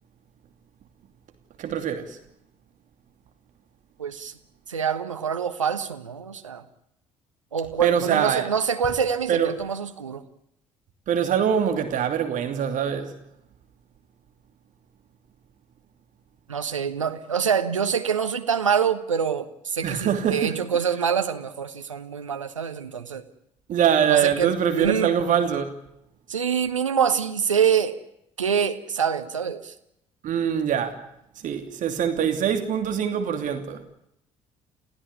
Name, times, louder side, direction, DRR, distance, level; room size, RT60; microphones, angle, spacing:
voice 1, 1.6-2.2 7.8-8.4 9.3-9.5 11.1-13.1 19.8-20.5 23.7-25.7 30.2-31.0 31.4-33.8, right 8 dB, 55° right, 2.8 m, -23 dB
voice 2, 4.0-4.3 4.7-6.6 7.5-10.2 16.5-23.2 24.1-25.1 26.3-28.0 28.4-29.7, right 7 dB, 90° right, 1.3 m, -25 dB
29.0 x 16.0 x 9.9 m
figure-of-eight pair, 50°, 16 cm